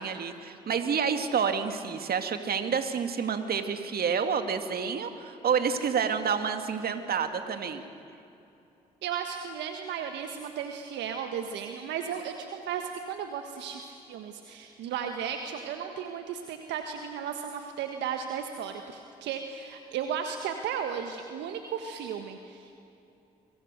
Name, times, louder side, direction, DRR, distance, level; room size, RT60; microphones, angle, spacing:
voice 1, 0.0-7.8, right 6 dB, 60° right, 7 dB, 2.2 m, -29 dB
voice 2, 9.0-22.9, right 7 dB, 75° right, 5 dB, 1.5 m, -35 dB
29.0 x 23.5 x 6.7 m, 2.8 s
hypercardioid pair, 45°, 18 cm